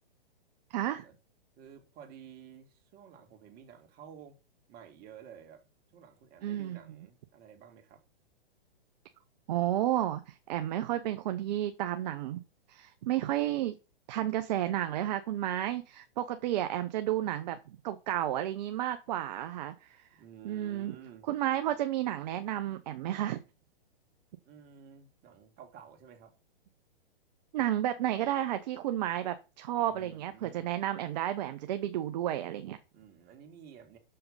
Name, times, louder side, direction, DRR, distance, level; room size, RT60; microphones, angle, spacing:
voice 1, 0.7-1.0 6.4-6.8 9.5-12.4 12.7-13.7 14.1-20.1 20.4-20.9 21.3-23.4 27.5-32.8, right 12 dB, 45° right, 0.8 m, -32 dB
voice 2, 1.6-4.4 4.7-5.6 5.9-8.0 20.2-21.2 24.4-26.4 29.8-30.7 32.9-34.0, right 8 dB, 30° right, 2.2 m, -52 dB
6.6 x 5.7 x 5.5 m
figure-of-eight pair, 115°, 30 cm